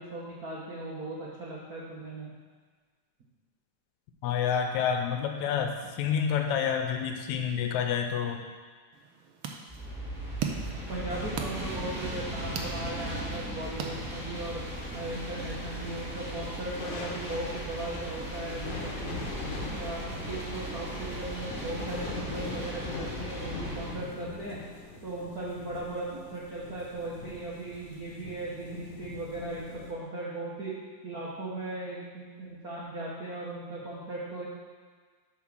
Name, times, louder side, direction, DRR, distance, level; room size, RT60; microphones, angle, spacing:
voice 1, 0.0-2.3 5.8-5.9 10.9-14.6 14.9-19.2 19.5-24.6 25.0-30.7 31.0-34.5, right 2 dB, 65° right, -6 dB, 0.9 m, -38 dB
voice 2, 4.2-8.4, left 7 dB, 80° left, 5 dB, 2.0 m, -28 dB
sound 1, 8.9-14.6, right 6 dB, 90° right, 1.1 m, -40 dB
sound 2, 9.7-23.9, right 1 dB, 5° right, 1.3 m, -38 dB
sound 3, 14.4-29.9, left 3 dB, 65° left, 1.8 m, -42 dB
8.7 x 4.7 x 6.1 m, 1.5 s
omnidirectional pair, 3.3 m